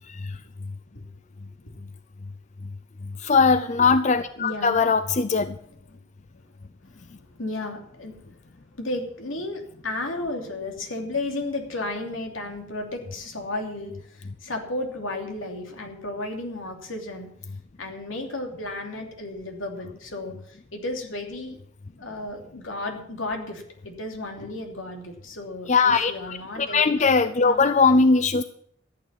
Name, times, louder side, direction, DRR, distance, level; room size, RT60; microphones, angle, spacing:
voice 1, 0.1-0.4 3.2-5.6 25.7-28.4, left 4 dB, 35° left, 12 dB, 0.5 m, -20 dB
voice 2, 4.4-4.8 6.4-6.5 6.9-8.4 8.8-17.3 17.8-21.6 22.0-27.1 27.4-27.6, left 2 dB, 80° left, 2 dB, 3.0 m, -33 dB
14.0 x 9.1 x 7.4 m, 0.65 s
head